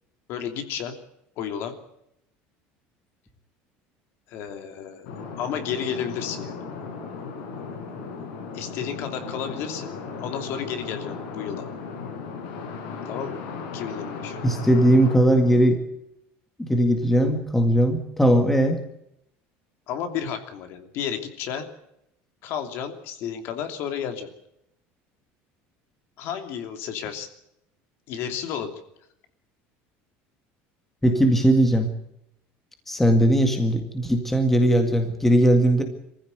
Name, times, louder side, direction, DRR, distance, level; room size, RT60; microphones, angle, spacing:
voice 1, 0.3-0.9 1.4-1.7 4.3-5.1 5.4-6.6 8.5-9.9 10.2-11.7 13.0-13.4 13.7-14.4 19.9-21.7 22.4-24.3 26.2-27.3 28.1-28.8, left 8 dB, 55° left, 6 dB, 3.0 m, -32 dB
sound 1, 5.1-15.6, left 5 dB, 85° left, 5.6 m, -36 dB
voice 2, 14.4-15.8 16.6-18.8 31.0-31.9 32.9-35.8, right 1 dB, 5° left, 5 dB, 2.0 m, -19 dB
23.5 x 15.5 x 8.0 m, 0.79 s
cardioid pair, 155°, 5 cm